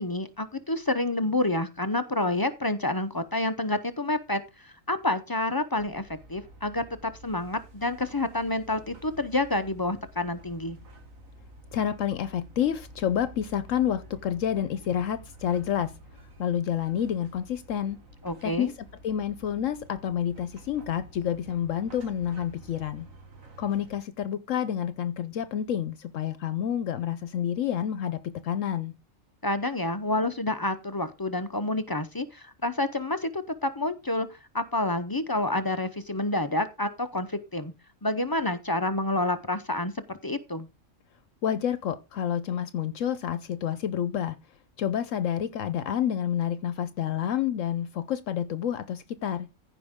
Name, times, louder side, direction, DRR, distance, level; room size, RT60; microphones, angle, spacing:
voice 1, 0.0-10.8 18.2-18.7 29.4-37.7 38.0-40.7, left 2 dB, 25° left, 0.5 m, -29 dB
sound 1, 5.7-24.0, right 1 dB, 80° right, 2.2 m, -50 dB
voice 2, 11.7-15.9 16.4-18.0 18.4-18.7 19.0-23.1 23.6-28.9 41.4-44.3 44.8-49.5, left 9 dB, 75° left, 1.0 m, -29 dB
15.0 x 5.3 x 3.6 m
omnidirectional pair, 1.4 m